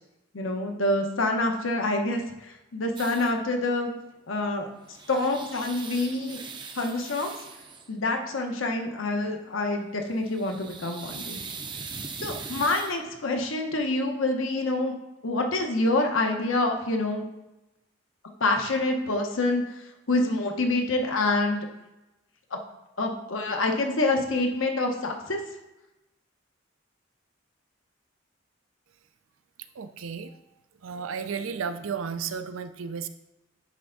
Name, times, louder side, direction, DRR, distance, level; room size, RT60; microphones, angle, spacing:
voice 1, 0.3-3.9 4.3-4.7 5.1-7.3 7.9-11.4 12.2-14.9 15.2-17.2 18.4-21.7 23.0-25.4, left 2 dB, 80° left, 3 dB, 1.0 m, -27 dB
sound 1, 3.0-3.4 4.6-7.9 10.1-13.0, right 5 dB, 25° right, 0.5 m, -40 dB
voice 2, 29.8-30.4 30.8-33.1, right 6 dB, 90° right, 10 dB, 0.5 m, -33 dB
9.8 x 3.4 x 3.9 m, 0.97 s
head